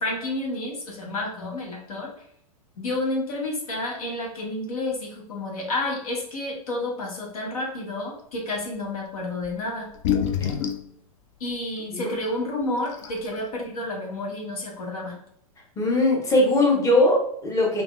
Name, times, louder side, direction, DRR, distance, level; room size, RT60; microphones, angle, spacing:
voice 1, 0.0-2.1 2.8-9.9 11.4-15.2 17.0-17.1, left 2 dB, 75° left, -1 dB, 1.1 m, -30 dB
sound 1, 9.4-9.5 9.9-10.9 12.0-12.1 12.6-12.7 12.9-13.4, left 8 dB, 55° left, 0.5 m, -26 dB
voice 2, 15.8-17.8, left 1 dB, 15° left, -2 dB, 1.0 m, -20 dB
3.4 x 2.8 x 2.4 m, 0.67 s
hypercardioid pair, 105°, 18 cm